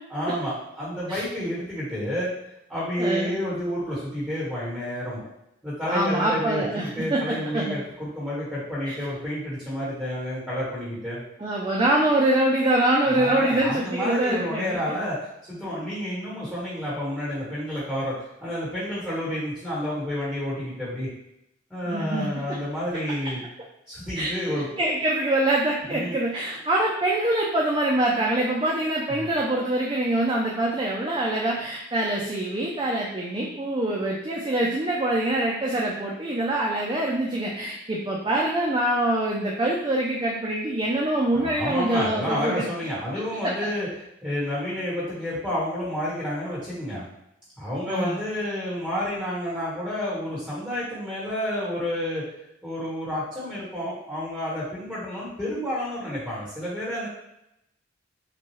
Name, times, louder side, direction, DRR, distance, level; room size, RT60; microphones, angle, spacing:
voice 1, 0.1-2.3 2.7-5.2 5.6-11.2 13.1-18.1 18.4-21.1 21.7-23.4 23.9-24.7 25.9-26.2 29.1-29.3 41.3-43.9 44.2-47.0 47.6-52.2 52.6-57.1, equal, 5° right, -10 dB, 1.3 m, -30 dB
voice 2, 3.0-3.4 5.9-7.2 7.5-7.8 8.9-9.0 11.4-14.8 21.9-22.3 24.1-42.6 43.4-43.5 47.9-48.2, right 1 dB, 25° right, -3 dB, 0.5 m, -24 dB
5.8 x 2.3 x 3.0 m, 0.82 s
head